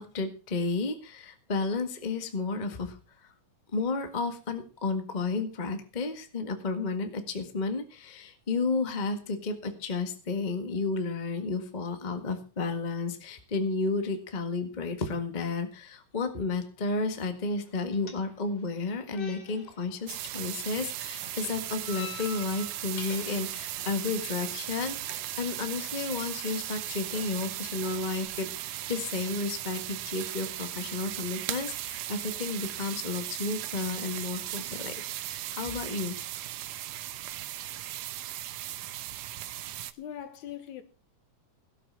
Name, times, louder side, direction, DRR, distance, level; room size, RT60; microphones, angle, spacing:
voice 1, 0.0-3.0 3.7-36.2, left 3 dB, 25° left, 1.0 m, -32 dB
sound 1, 16.8-28.3, left 6 dB, 85° left, 3.9 m, -49 dB
sound 2, 20.1-39.9, right 14 dB, 85° right, 2.3 m, -37 dB
voice 2, 40.0-40.8, left 10 dB, 70° left, 2.6 m, -40 dB
17.0 x 8.0 x 5.6 m
omnidirectional pair, 3.6 m